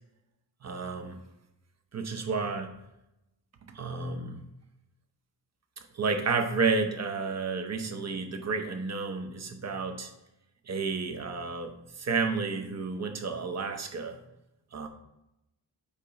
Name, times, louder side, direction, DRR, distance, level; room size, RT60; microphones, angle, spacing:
voice 1, 0.6-1.2 1.9-2.8 3.7-4.4 5.9-10.1 10.7-14.2 14.7-14.9, right 4 dB, 35° right, 6 dB, 0.7 m, -31 dB
8.5 x 2.9 x 5.1 m, 0.90 s
wide cardioid pair, 165°, 44 cm